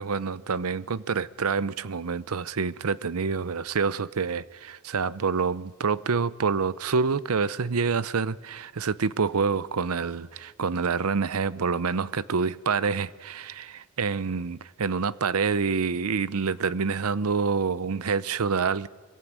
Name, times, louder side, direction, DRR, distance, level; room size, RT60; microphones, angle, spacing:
voice 1, 0.0-18.9, right 5 dB, 75° right, 0.7 m, -27 dB
24.0 x 22.0 x 9.5 m
head